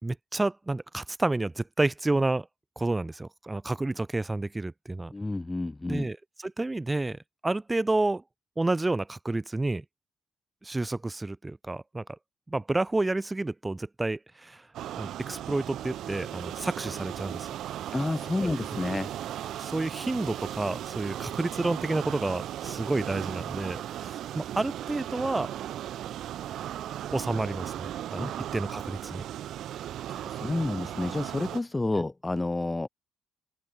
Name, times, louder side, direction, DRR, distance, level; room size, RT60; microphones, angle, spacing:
voice 1, 0.0-2.5 2.8-5.1 5.9-8.2 8.6-9.8 10.6-12.0 12.5-14.7 15.0-17.5 18.4-18.5 19.6-25.5 27.1-29.2, right 2 dB, 10° right, 1.3 m, -30 dB
voice 2, 5.1-6.1 17.9-19.1 28.2-28.3 30.1-32.9, left 2 dB, 10° left, 0.5 m, -30 dB
sound 1, 14.7-31.6, right 11 dB, 65° right, 1.0 m, -37 dB
open air
cardioid pair, 125°, 0 cm